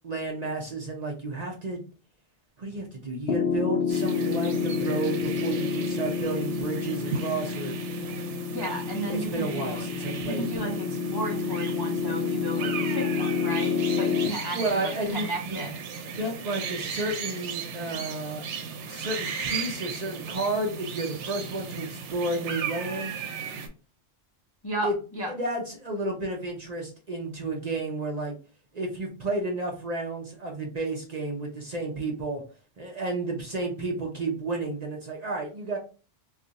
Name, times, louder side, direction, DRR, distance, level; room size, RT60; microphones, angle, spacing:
voice 1, 0.0-1.8 2.6-7.8 8.5-8.7 9.1-10.5 14.5-15.7 16.1-18.4 18.9-23.1 24.8-24.9 25.3-28.4 28.7-32.4 32.8-35.8, right 2 dB, 45° right, 0 dB, 0.6 m, -32 dB
Piano, 3.3-14.3, left 6 dB, 65° left, 0.7 m, -29 dB
sound 1, 3.9-23.7, right 6 dB, 90° right, 0.9 m, -36 dB
voice 2, 8.5-9.8 10.3-15.7 24.6-25.3, right 1 dB, 35° left, -2 dB, 0.4 m, -34 dB
2.4 x 2.4 x 3.9 m, 0.35 s
omnidirectional pair, 1.2 m